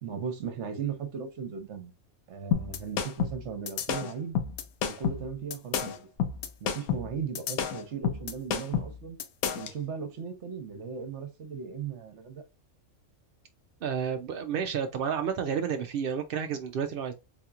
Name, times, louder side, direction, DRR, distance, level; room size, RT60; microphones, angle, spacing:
voice 1, 0.0-1.9 2.3-4.4 4.9-6.1 6.6-9.2 9.5-12.4, right 6 dB, 55° right, 1.1 m, -37 dB
sound 1, 2.5-9.7, left 8 dB, 85° left, 1.1 m, -30 dB
voice 2, 13.8-17.1, right 7 dB, 80° right, 0.5 m, -31 dB
4.0 x 2.9 x 2.3 m
omnidirectional pair, 1.5 m